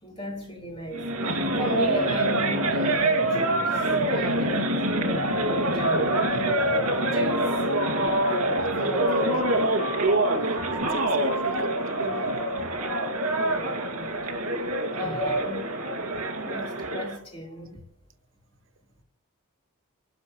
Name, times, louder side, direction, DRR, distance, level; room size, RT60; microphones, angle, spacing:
voice 1, 0.0-7.5 8.8-9.4 13.4-14.2 14.9-15.7 16.4-17.8, right 1 dB, 25° left, 3.5 m, -36 dB
sound 1, 0.9-17.2, right 1 dB, 75° right, 2.3 m, -25 dB
sound 2, 5.1-13.1, left 1 dB, 60° left, 6.7 m, -36 dB
voice 2, 8.8-9.6 10.4-12.4, right 3 dB, 60° right, 0.9 m, -36 dB
24.5 x 12.0 x 3.2 m
head